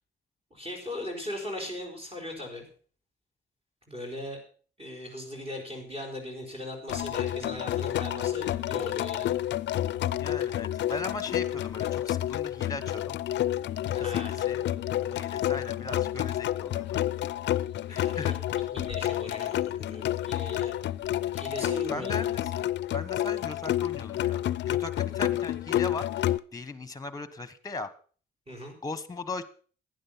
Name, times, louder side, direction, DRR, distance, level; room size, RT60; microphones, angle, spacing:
voice 1, 0.5-2.6 3.9-4.4 4.8-9.4 13.9-14.5 17.9-20.7 21.3-22.3 28.5-28.7, left 1 dB, 30° right, 2 dB, 4.9 m, -39 dB
sound 1, 6.9-26.4, left 13 dB, 65° left, 0.5 m, -29 dB
voice 2, 10.2-13.2 13.9-14.6 14.9-17.0 17.9-18.7 21.6-22.7 22.9-27.9 28.8-29.4, left 3 dB, 15° left, 15 dB, 1.2 m, -39 dB
11.5 x 10.0 x 5.8 m, 0.41 s
cardioid pair, 90°, 20 cm